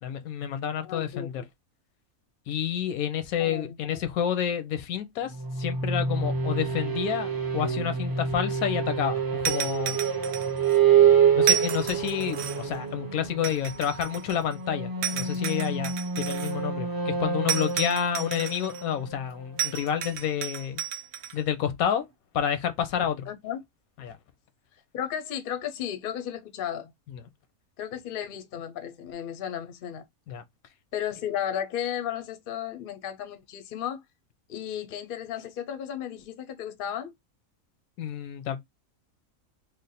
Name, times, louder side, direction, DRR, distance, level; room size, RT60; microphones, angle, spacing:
voice 1, 0.0-1.4 2.5-10.0 11.3-20.8 21.3-22.1 22.3-23.3 24.0-24.2 27.1-27.2 30.3-30.4 38.0-38.6, left 9 dB, 85° left, 1.1 m, -29 dB
voice 2, 0.8-1.3 3.4-3.7 23.3-23.6 24.9-26.9 27.8-30.0 30.9-34.0 34.5-37.1, left 9 dB, 55° left, 0.7 m, -34 dB
sound 1, 5.3-19.9, right 7 dB, 35° right, 0.3 m, -27 dB
sound 2, 9.4-10.8 11.4-12.8 13.4-14.5 15.0-16.5 17.5-18.8 19.6-21.3, right 9 dB, 70° right, 0.8 m, -32 dB
3.2 x 2.1 x 4.0 m
omnidirectional pair, 1.5 m